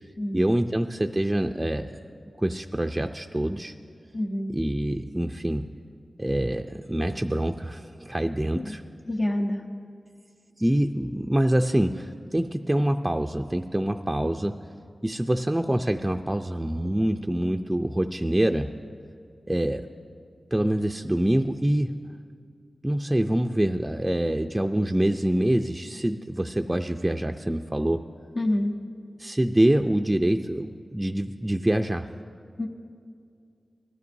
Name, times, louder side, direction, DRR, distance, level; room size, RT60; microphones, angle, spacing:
voice 1, 0.0-2.0 2.4-3.7 4.5-5.7 6.2-8.8 10.6-14.5 15.0-18.7 19.5-19.9 20.5-22.1 22.8-28.0 29.2-32.1, right 1 dB, 15° right, 4 dB, 0.4 m, -25 dB
voice 2, 4.1-4.5 8.5-8.7 9.1-9.6 28.3-28.7 32.6-32.7, left 1 dB, 60° left, 0 dB, 1.0 m, -27 dB
19.5 x 13.0 x 2.7 m, 2.3 s
cardioid pair, 55°, 0 cm